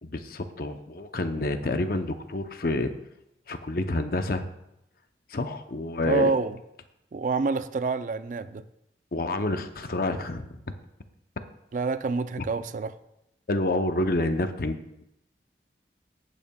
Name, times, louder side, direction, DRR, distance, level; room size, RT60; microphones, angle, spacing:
voice 1, 0.0-2.9 3.5-4.5 5.3-6.3 9.1-10.5 13.5-15.0, left 2 dB, 55° left, 8 dB, 0.7 m, -28 dB
voice 2, 6.0-6.6 7.1-8.6 11.7-13.0, right 4 dB, 45° right, 12 dB, 0.4 m, -27 dB
15.5 x 8.4 x 2.3 m, 0.83 s
head